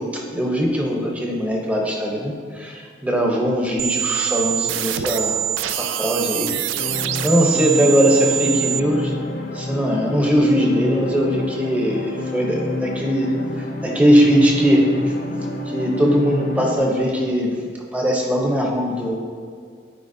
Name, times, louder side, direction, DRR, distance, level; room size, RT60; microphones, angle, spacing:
voice 1, 0.3-2.3 2.6-6.6 7.2-9.1 9.6-13.3 13.8-14.8 15.7-17.6 17.9-19.2, equal, 5° right, -1 dB, 0.8 m, -20 dB
sound 1, 3.8-8.8, right 12 dB, 85° right, 0.3 m, -24 dB
sound 2, 6.8-16.8, left 1 dB, 50° left, 0.6 m, -29 dB
12.5 x 4.6 x 2.7 m, 2.1 s
head